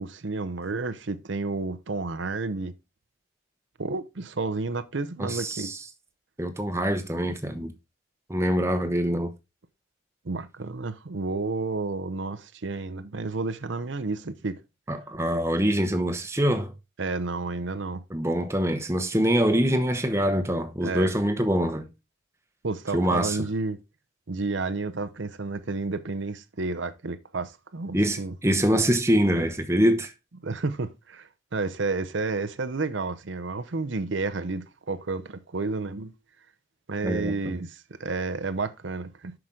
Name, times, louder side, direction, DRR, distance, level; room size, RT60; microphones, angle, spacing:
voice 1, 0.0-2.7 3.8-5.7 10.2-14.6 17.0-18.0 20.8-21.1 22.6-23.8 24.3-28.3 30.4-36.1 36.9-39.3, right 3 dB, 70° right, 0.7 m, -31 dB
voice 2, 5.2-5.8 6.4-7.7 8.3-9.3 14.9-16.7 18.1-21.9 22.9-23.5 27.9-30.1 37.0-37.6, equal, 15° right, 0.9 m, -24 dB
7.7 x 6.0 x 3.8 m
head